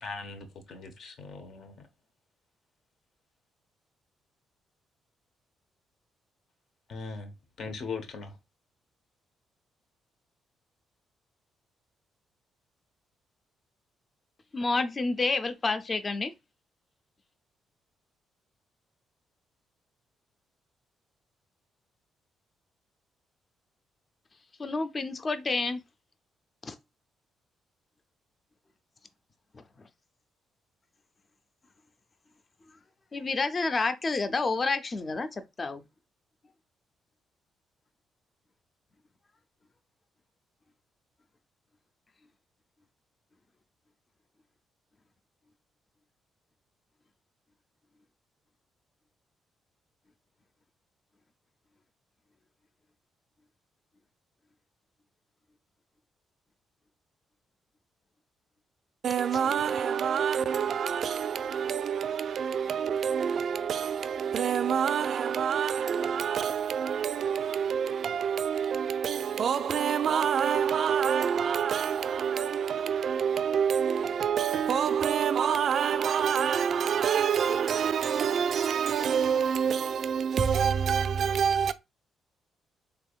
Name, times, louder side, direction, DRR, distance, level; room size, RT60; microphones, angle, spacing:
voice 1, 0.0-1.9 6.9-8.4, left 4 dB, 65° left, 0.9 m, -40 dB
voice 2, 14.5-16.3 24.6-25.8 26.6-26.8 29.5-29.9 33.1-35.8 59.6-59.8, left 3 dB, 35° left, 0.5 m, -29 dB
voice 3, 59.0-81.7, right 7 dB, 60° right, 0.4 m, -27 dB
3.4 x 3.4 x 2.3 m
cardioid pair, 90°, 0 cm